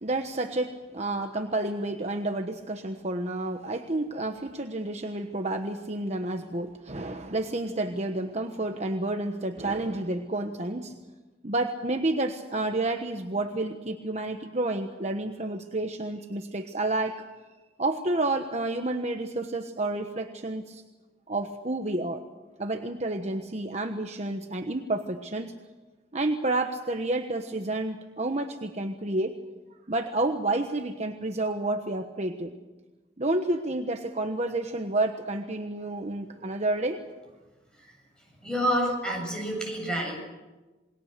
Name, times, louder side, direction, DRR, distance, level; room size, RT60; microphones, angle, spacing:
voice 1, 0.0-10.9 11.4-17.2 17.8-20.8 21.3-22.2 22.6-25.6 26.1-29.3 29.9-32.5 33.2-37.0 38.9-39.0 39.4-39.5, right 2 dB, 35° right, 5 dB, 1.1 m, -30 dB
voice 2, 38.4-40.2, equal, 5° left, -1 dB, 7.8 m, -28 dB
28.0 x 21.0 x 6.7 m, 1.2 s
head